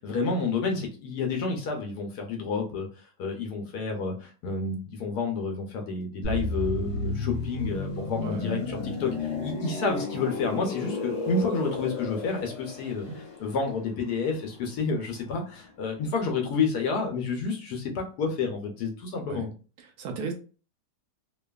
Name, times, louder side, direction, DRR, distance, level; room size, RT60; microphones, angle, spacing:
voice 1, 0.0-13.1 13.4-19.5, left 4 dB, 75° left, 1.1 m, -30 dB
sound 1, 6.2-15.9 16.2-16.4, left 3 dB, 50° left, 1.0 m, -33 dB
voice 2, 19.8-20.3, right 5 dB, 75° right, 1.0 m, -36 dB
2.8 x 2.3 x 2.3 m
omnidirectional pair, 1.8 m